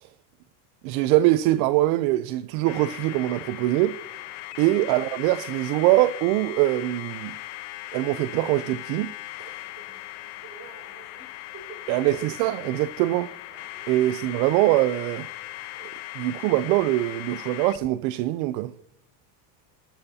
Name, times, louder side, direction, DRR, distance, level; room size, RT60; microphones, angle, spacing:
voice 1, 0.8-4.0 4.6-7.4 7.9-9.1 9.4-9.5 11.9-13.3 13.9-15.3 15.8-15.9 16.2-18.7, right 16 dB, 65° right, 0.6 m, -23 dB
sound 1, 2.7-17.9, left 16 dB, 75° left, 1.0 m, -39 dB
voice 2, 9.6-11.9 13.7-14.0, right 3 dB, 30° right, 4.5 m, -49 dB
13.0 x 12.5 x 2.8 m
supercardioid pair, 125°, 48 cm